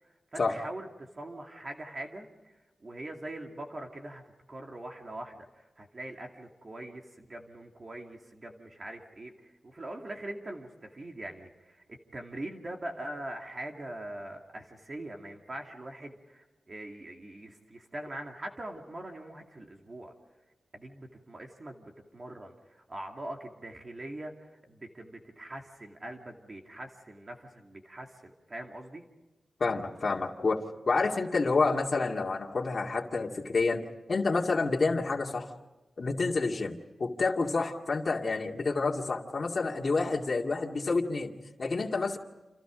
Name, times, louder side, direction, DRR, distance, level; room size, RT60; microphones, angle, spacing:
voice 1, 0.0-4.2 4.5-20.1 20.7-29.1, right 1 dB, 35° right, 2 dB, 2.5 m, -43 dB
voice 2, 29.6-30.6 30.9-35.5 36.0-41.3 41.6-42.2, left 3 dB, 45° left, 0 dB, 2.3 m, -29 dB
30.0 x 28.0 x 5.1 m, 1.1 s
wide cardioid pair, 150°, 0 cm